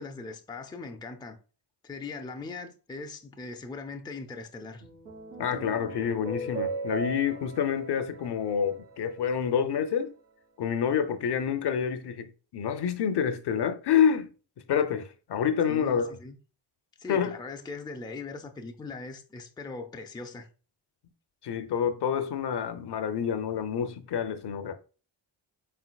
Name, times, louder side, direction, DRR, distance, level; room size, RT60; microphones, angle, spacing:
voice 1, 0.0-1.4 1.8-4.8 15.7-16.4 17.0-20.5, left 3 dB, 10° left, 0.5 m, -40 dB
sound 1, 4.8-9.4, right 3 dB, 75° right, 1.9 m, -38 dB
voice 2, 5.4-10.1 10.6-14.3 14.7-16.1 17.1-17.4 21.4-24.7, left 7 dB, 55° left, 0.6 m, -28 dB
4.4 x 3.8 x 2.3 m
cardioid pair, 70°, 48 cm